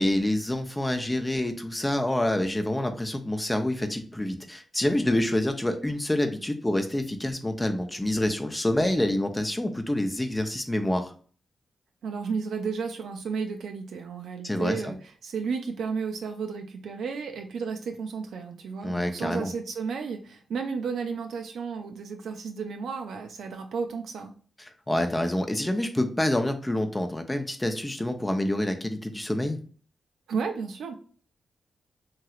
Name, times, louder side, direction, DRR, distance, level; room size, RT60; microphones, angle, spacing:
voice 1, 0.0-11.1 14.4-14.9 18.8-19.5 24.6-29.6, left 1 dB, 15° left, 6 dB, 0.5 m, -27 dB
voice 2, 12.0-15.0 15.2-24.3 30.3-30.9, right 5 dB, 85° right, 4 dB, 0.4 m, -33 dB
3.0 x 2.8 x 2.3 m, 0.43 s
cardioid pair, 80°, 0 cm